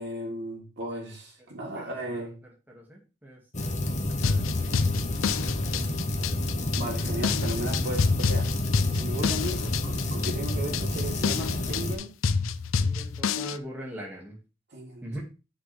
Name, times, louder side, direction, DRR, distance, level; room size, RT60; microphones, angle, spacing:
voice 1, 0.0-2.3 6.8-8.5 8.9-12.1 14.7-15.2, right 1 dB, 60° right, -1 dB, 3.3 m, -36 dB
voice 2, 2.7-3.7 4.2-6.4 12.8-14.4 15.0-15.2, right 1 dB, 10° right, -2 dB, 2.1 m, -43 dB
sound 1, 3.5-12.0, left 1 dB, 40° left, 1.2 m, -29 dB
sound 2, 4.2-13.6, left 5 dB, 90° left, 0.5 m, -28 dB
9.9 x 6.2 x 3.4 m, 0.30 s
head